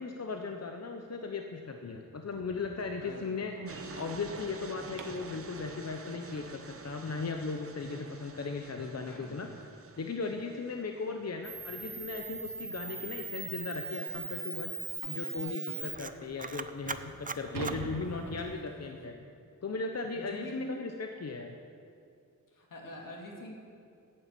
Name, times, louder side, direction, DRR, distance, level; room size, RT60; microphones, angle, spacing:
voice 1, 0.0-3.5 3.9-9.5 10.0-14.7 15.0-19.1 19.6-21.5, left 4 dB, 50° left, 4 dB, 0.8 m, -37 dB
sound 1, 2.3-5.4 8.2-8.3 8.8-9.0 9.3-9.4 9.9-10.0 11.1-11.3 11.7-11.8 12.5-12.6 12.9-13.0 13.5-13.6 15.0-15.3 16.1-16.2 16.6-18.9, right 4 dB, 80° right, 1.1 m, -45 dB
voice 2, 3.0-3.6 9.0-9.7 18.0-18.6 18.9-19.0 20.1-20.8 22.5-23.6, equal, 75° left, 0 dB, 2.4 m, -45 dB
sound 2, 3.7-11.3, right 4 dB, 40° right, 0.9 m, -48 dB
Camera, 11.4-18.6, right 4 dB, 25° right, 0.5 m, -40 dB
12.0 x 8.8 x 8.4 m, 2.5 s
wide cardioid pair, 115°, 33 cm